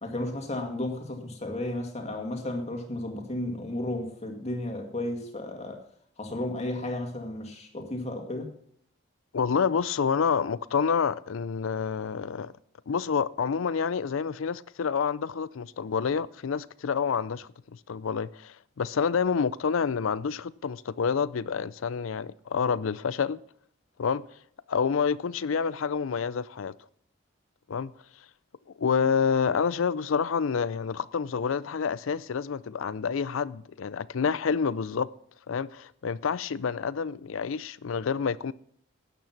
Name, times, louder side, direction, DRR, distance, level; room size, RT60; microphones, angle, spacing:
voice 1, 0.0-5.8 6.2-8.5, left 1 dB, 30° left, 2.2 m, -33 dB
voice 2, 9.3-12.5 12.9-17.5 17.9-23.4 24.0-24.2 24.7-26.7 27.7-27.9 28.8-35.1 35.5-38.5, left 6 dB, 80° left, 0.5 m, -28 dB
12.5 x 9.2 x 5.9 m
head